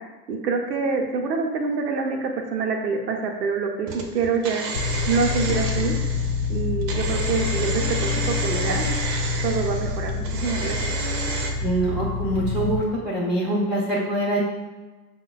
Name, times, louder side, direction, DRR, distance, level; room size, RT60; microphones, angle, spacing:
voice 1, 0.3-4.6 5.1-5.9 6.5-8.9 9.4-10.8, right 4 dB, 90° right, 2 dB, 0.7 m, -26 dB
sound 1, 3.9-11.5, right 3 dB, 45° right, 0.6 m, -31 dB
sound 2, 4.7-12.8, left 5 dB, 60° left, 0.5 m, -27 dB
voice 2, 11.6-14.4, right 1 dB, ahead, -7 dB, 0.5 m, -24 dB
5.5 x 2.1 x 2.3 m, 1.2 s
hypercardioid pair, 100°, 47 cm